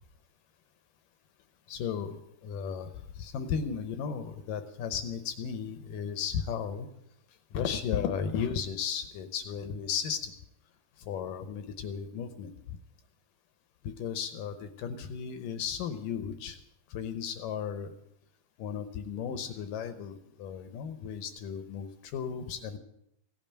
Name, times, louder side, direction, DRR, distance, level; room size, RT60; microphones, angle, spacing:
voice 1, 1.7-6.9 7.5-10.3 11.0-12.5 13.8-16.6 16.9-17.9 18.6-22.8, left 7 dB, 75° left, 10 dB, 2.1 m, -35 dB
16.0 x 9.0 x 8.8 m, 0.78 s
omnidirectional pair, 4.8 m